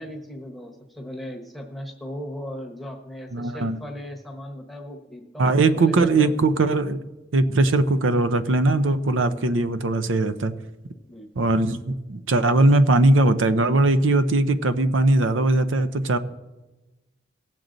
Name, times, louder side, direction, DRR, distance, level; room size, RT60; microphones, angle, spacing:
voice 1, 0.0-6.3 11.1-11.5, equal, ahead, 0 dB, 1.1 m, -37 dB
voice 2, 3.3-3.8 5.4-7.0 7.3-10.5 11.4-16.2, right 2 dB, 85° right, 12 dB, 0.6 m, -20 dB
18.0 x 7.6 x 3.9 m, 1.1 s
head